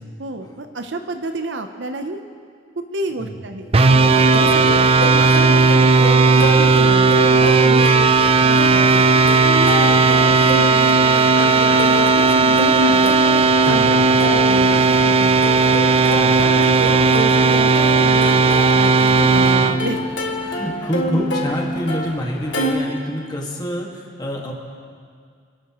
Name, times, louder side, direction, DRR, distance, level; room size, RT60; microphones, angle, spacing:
voice 1, 0.2-2.2 2.9-4.6 5.0-8.0 8.4-13.1 13.6-15.6 16.0-20.1, right 2 dB, 70° right, 6 dB, 0.7 m, -30 dB
sound 1, 3.7-19.8, right 4 dB, 30° right, 0.5 m, -15 dB
Plucked string instrument, 3.8-22.7, left 1 dB, 65° left, 1.7 m, -27 dB
voice 2, 7.6-8.0 13.6-14.2 16.1-16.6 19.2-19.8 20.4-24.5, equal, 20° left, -1 dB, 1.8 m, -27 dB
26.0 x 12.0 x 3.0 m, 2.2 s
head